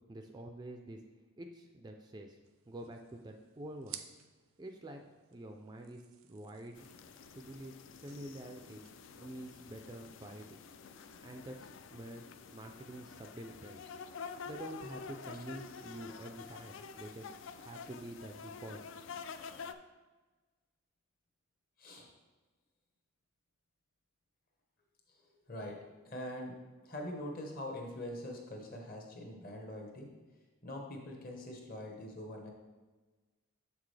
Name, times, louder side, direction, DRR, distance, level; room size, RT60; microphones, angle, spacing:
voice 1, 0.1-1.0 1.4-2.4 2.7-4.0 4.6-5.0 5.3-6.0 6.3-6.9 7.3-7.7 8.0-8.9 9.2-10.6 11.2-12.3 12.5-13.9 14.4-17.3 17.6-18.8, right 1 dB, 20° right, 4 dB, 0.3 m, -47 dB
sound 1, 2.4-10.1, right 10 dB, 80° right, 0.5 m, -56 dB
sound 2, 6.8-19.7, left 5 dB, 65° left, 0.4 m, -49 dB
voice 2, 26.0-26.6 26.8-30.1 30.6-32.5, left 1 dB, 40° left, 1 dB, 1.1 m, -43 dB
7.0 x 5.9 x 3.3 m, 1.3 s
head